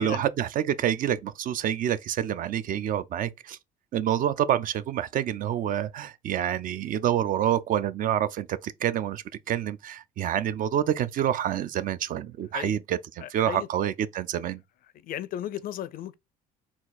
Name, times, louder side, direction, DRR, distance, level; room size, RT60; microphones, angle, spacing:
voice 1, 0.0-3.6 3.9-14.6, right 10 dB, 55° right, 0.4 m, -27 dB
voice 2, 13.2-13.7 15.0-16.1, left 11 dB, 55° left, 0.4 m, -35 dB
4.3 x 2.4 x 3.9 m
cardioid pair, 110°, 17 cm